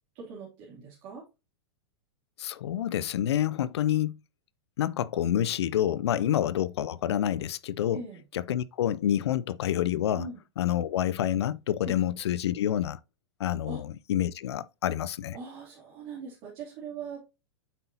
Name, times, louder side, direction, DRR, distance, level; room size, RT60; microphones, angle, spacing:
voice 1, 0.1-1.2 7.9-8.2 10.2-10.4 11.8-12.0 13.7-13.8 15.3-17.4, right 5 dB, 45° right, 2.8 m, -41 dB
voice 2, 2.4-4.2 4.8-8.0 8.3-10.3 10.6-13.0 13.4-15.4, left 11 dB, 85° left, 0.4 m, -28 dB
8.2 x 5.4 x 2.7 m
hypercardioid pair, 125°, 14 cm